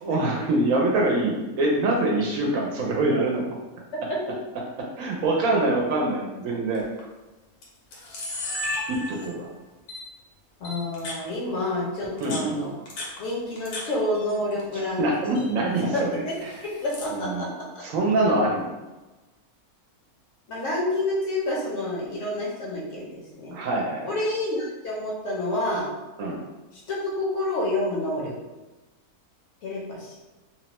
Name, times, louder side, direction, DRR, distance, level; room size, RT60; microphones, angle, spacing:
voice 1, 0.0-3.4 5.0-6.8 8.9-9.5 12.2-12.6 15.0-16.2 17.1-17.4 17.8-18.7 23.5-24.1 26.2-26.4, right 2 dB, 70° right, -1 dB, 0.9 m, -24 dB
Camera, 6.7-7.0 7.6-7.7 7.9-9.5 9.9-10.0 10.6-11.2 12.0-13.8 14.1-14.9 15.1-15.5 16.3-17.2, left 2 dB, 90° left, 1.3 m, -34 dB
voice 2, 10.6-12.7 13.2-15.4 15.7-16.3 16.6-17.5 17.7-17.8 20.5-23.6 24.0-25.9 26.7-28.3 29.6-30.1, left 1 dB, 60° left, -4 dB, 0.9 m, -28 dB
2.9 x 2.1 x 2.9 m, 1.1 s
omnidirectional pair, 1.6 m